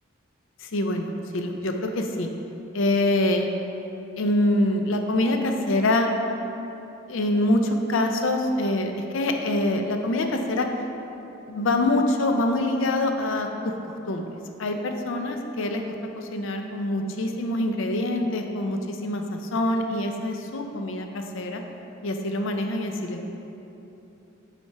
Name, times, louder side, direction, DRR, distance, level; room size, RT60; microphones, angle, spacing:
voice 1, 0.7-2.3 2.7-3.5 4.2-6.1 7.1-10.7 11.5-13.7 14.1-14.2 14.6-21.6 22.0-23.3, left 1 dB, 70° left, 4 dB, 0.5 m, -25 dB
5.6 x 4.3 x 4.6 m, 3.0 s
head